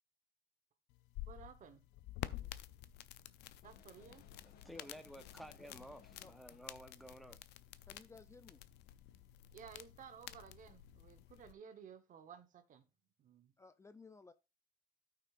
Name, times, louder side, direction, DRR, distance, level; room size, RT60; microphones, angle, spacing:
sound 1, 0.9-11.5, left 14 dB, 85° left, 0.5 m, -51 dB
voice 1, 1.2-1.8 2.4-2.6 3.6-4.3 9.5-12.9 13.2-13.5, right 7 dB, 50° right, 1.1 m, -56 dB
sound 2, 3.6-6.8, left 8 dB, 70° left, 1.0 m, -65 dB
voice 2, 4.4-7.4, equal, ahead, 0.9 m, -54 dB
voice 3, 7.9-8.6 13.6-14.3, left 4 dB, 15° left, 0.4 m, -57 dB
13.0 x 5.9 x 2.5 m
cardioid pair, 110°, 17 cm